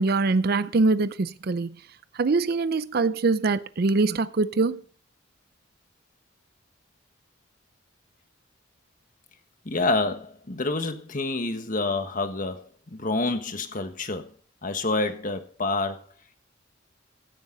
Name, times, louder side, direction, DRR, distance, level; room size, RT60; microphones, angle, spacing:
voice 1, 0.0-1.8 2.1-4.8, right 3 dB, 50° right, 0.5 m, -23 dB
voice 2, 9.6-12.6 12.9-14.3 14.6-16.0, left 2 dB, 45° left, 1.5 m, -27 dB
16.0 x 10.5 x 3.9 m
head